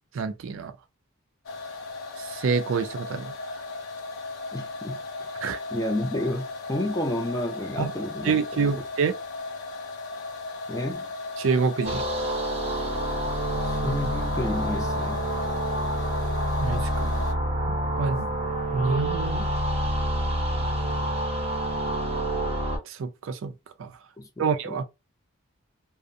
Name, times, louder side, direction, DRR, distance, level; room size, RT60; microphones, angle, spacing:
voice 1, 0.1-0.7 2.2-3.3 5.4-5.6 7.8-7.9 8.2-9.2 11.4-12.1 16.6-17.2 17.7-18.3 18.7-19.5 22.9-23.5 23.8-23.9 24.4-24.8, right 5 dB, 70° right, 0.4 m, -27 dB
sound 1, 1.4-17.3, left 3 dB, 80° left, 0.6 m, -36 dB
voice 2, 4.5-5.0 5.7-8.7 10.7-11.1 13.6-15.3 24.2-24.8, left 1 dB, 15° left, 0.4 m, -31 dB
sound 2, 11.8-22.8, right 1 dB, 30° right, 0.7 m, -27 dB
2.5 x 2.0 x 2.5 m
head